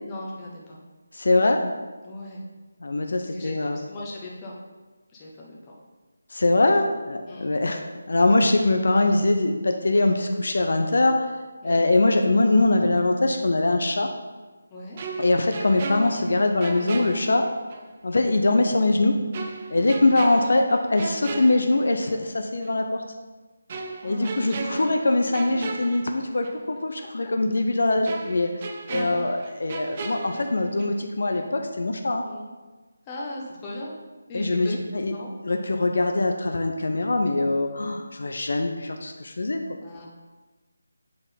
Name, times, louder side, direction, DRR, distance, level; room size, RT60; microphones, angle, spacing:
voice 1, 0.0-0.8 2.0-2.4 3.2-4.6 5.1-5.8 7.3-7.6 11.6-11.8 14.7-15.0 19.7-20.2 24.0-24.9 27.0-27.3 32.2-32.5 33.1-33.9 34.3-34.8 35.1-35.3 39.8-40.1, left 1 dB, 15° left, -4 dB, 0.9 m, -39 dB
voice 2, 1.2-1.6 2.8-3.8 6.3-7.8 8.1-11.3 11.6-14.1 15.2-17.5 18.0-19.2 19.7-23.0 24.0-28.5 28.9-32.2 34.3-34.7 35.0-35.1 35.4-39.6, left 2 dB, 65° left, 4 dB, 0.7 m, -22 dB
sound 1, 15.0-17.9 18.2-18.4 19.3-22.3 22.6-22.8 23.7-26.7 27.0-27.1 28.1-31.1 31.3-31.6, right 3 dB, 30° right, 0.5 m, -36 dB
7.8 x 3.7 x 4.1 m, 1.3 s
figure-of-eight pair, 170°, 0 cm